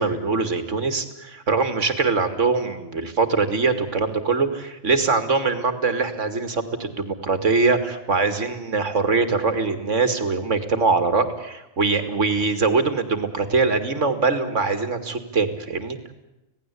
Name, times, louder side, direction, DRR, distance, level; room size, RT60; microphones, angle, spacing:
voice 1, 0.0-16.0, right 4 dB, 65° right, 9 dB, 2.6 m, -22 dB
27.0 x 18.0 x 8.4 m, 0.96 s
omnidirectional pair, 1.4 m